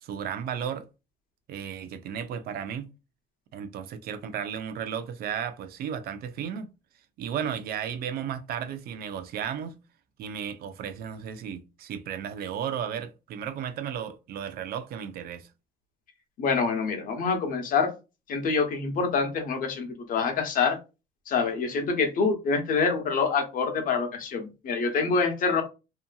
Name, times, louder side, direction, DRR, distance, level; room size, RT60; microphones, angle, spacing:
voice 1, 0.0-0.8 1.5-2.9 3.5-6.7 7.2-9.8 10.2-15.5, right 8 dB, 65° right, 0.5 m, -34 dB
voice 2, 16.4-17.9 18.3-20.8 21.3-25.6, left 5 dB, 55° left, 0.8 m, -26 dB
2.8 x 2.5 x 2.3 m
cardioid pair, 110°, 17 cm